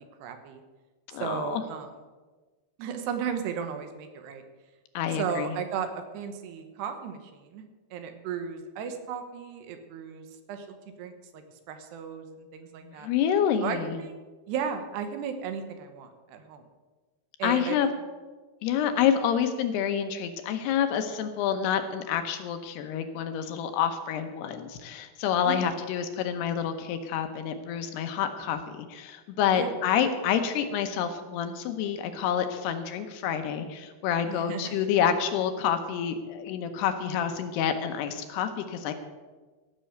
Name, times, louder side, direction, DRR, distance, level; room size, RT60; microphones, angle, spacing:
voice 1, 0.2-0.6 1.2-1.9 2.8-4.4 5.2-7.6 7.9-13.1 13.6-14.1 14.5-16.6 17.4-17.9 25.5-25.7 29.5-29.7 34.3-34.9, right 7 dB, 75° right, 7 dB, 3.1 m, -35 dB
voice 2, 1.1-1.6 4.9-5.5 13.0-14.0 17.4-17.9 18.6-38.9, left 8 dB, 75° left, 7 dB, 2.8 m, -28 dB
15.5 x 6.9 x 7.8 m, 1.3 s
omnidirectional pair, 5.0 m